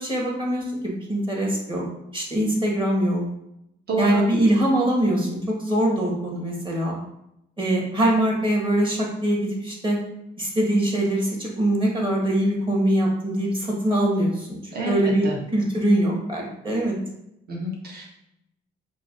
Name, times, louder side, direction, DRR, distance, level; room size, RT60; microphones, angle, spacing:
voice 1, 0.0-1.9 2.1-3.2 4.0-7.0 7.6-10.0 10.4-15.3 15.5-17.0, right 1 dB, 25° right, -2 dB, 1.4 m, -23 dB
voice 2, 3.9-4.2 14.7-15.0 15.2-15.4 17.5-18.0, right 2 dB, 50° right, -2 dB, 1.2 m, -28 dB
5.6 x 2.6 x 2.5 m, 0.81 s
cardioid pair, 90°, 20 cm